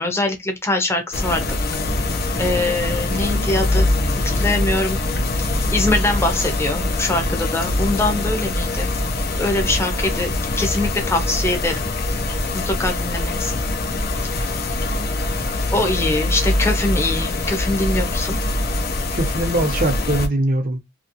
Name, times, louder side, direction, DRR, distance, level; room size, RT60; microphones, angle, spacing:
voice 1, 0.0-1.4 2.4-3.9 4.2-5.0 5.7-8.9 9.3-10.3 10.6-11.9 12.5-13.6 14.3-14.5 15.7-18.4, left 2 dB, 15° left, 0.8 m, -23 dB
sound 1, 1.1-20.3, left 2 dB, 50° left, 0.7 m, -23 dB
sound 2, 1.8-2.4 2.8-2.9 3.1-8.4, right 1 dB, 75° left, 1.2 m, -35 dB
voice 2, 19.1-20.8, right 1 dB, 45° right, 0.7 m, -21 dB
3.0 x 2.9 x 2.8 m
head